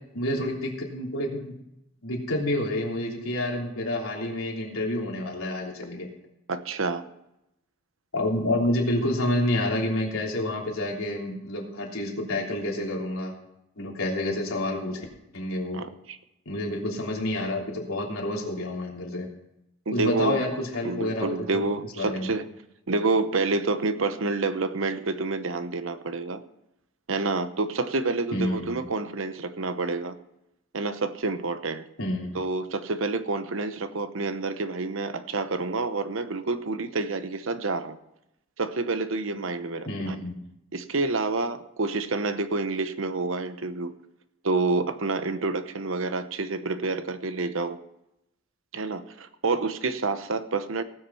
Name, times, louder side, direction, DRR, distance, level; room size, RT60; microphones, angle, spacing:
voice 1, 0.1-1.5 2.0-6.1 8.1-13.3 13.8-15.1 15.3-15.8 16.4-19.3 19.9-21.7 21.9-22.3 28.3-28.8 32.0-32.4 39.8-40.3, left 1 dB, 75° left, -1 dB, 3.2 m, -28 dB
voice 2, 6.5-7.0 15.7-16.2 19.9-20.4 20.8-22.4 22.9-26.4 27.1-30.2 30.7-31.9 32.3-38.0 38.6-40.2 40.7-43.9 44.4-47.8 48.7-50.8, right 3 dB, 65° right, 11 dB, 0.9 m, -28 dB
18.0 x 6.6 x 5.6 m, 0.86 s
head